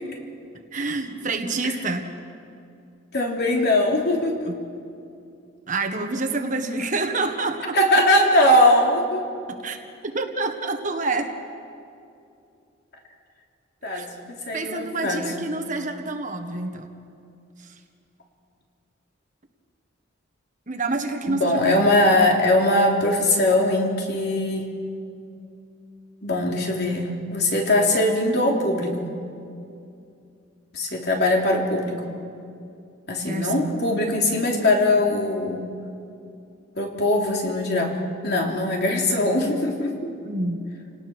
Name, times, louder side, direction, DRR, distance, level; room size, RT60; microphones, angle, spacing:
voice 1, 0.7-2.1 4.5-4.6 5.7-7.8 9.6-9.8 10.1-11.3 13.9-14.1 14.5-16.9 17.6-17.7 20.7-21.8 33.2-33.7 40.2-40.6, right 3 dB, 40° right, 5 dB, 1.6 m, -27 dB
voice 2, 3.1-4.5 7.7-9.2 13.8-14.1 14.5-15.3 21.3-24.7 26.2-29.2 30.7-32.0 33.1-35.7 36.8-40.1, left 1 dB, 55° left, 0 dB, 3.4 m, -21 dB
30.0 x 18.5 x 6.2 m, 2.5 s
head